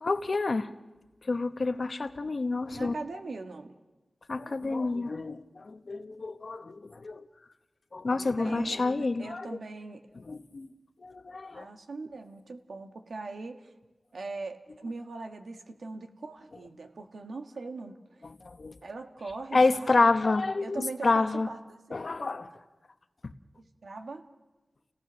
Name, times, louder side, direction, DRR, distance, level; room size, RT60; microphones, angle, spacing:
voice 1, 0.0-0.7 1.3-3.0 4.3-7.2 7.9-9.6 10.2-10.7 11.0-11.7 18.4-18.7 19.5-21.5 21.9-22.5, left 3 dB, 55° left, 9 dB, 1.0 m, -28 dB
voice 2, 2.7-3.7 8.4-10.1 11.5-13.7 14.1-18.0 18.8-20.1 20.6-21.8 23.8-24.3, right 3 dB, 90° right, 5 dB, 1.5 m, -40 dB
29.5 x 17.5 x 6.3 m, 1.2 s
wide cardioid pair, 80°, 0 cm